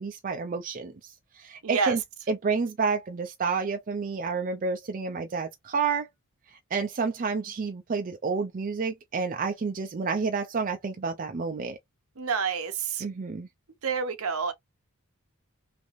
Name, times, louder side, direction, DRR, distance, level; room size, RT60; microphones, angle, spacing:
voice 1, 0.0-2.0 2.3-6.1 6.7-11.8 13.0-13.5, right 4 dB, 40° right, 0.4 m, -30 dB
voice 2, 1.6-2.0 12.2-13.0 13.8-14.5, right 5 dB, 70° right, 0.7 m, -28 dB
3.2 x 2.7 x 2.5 m
head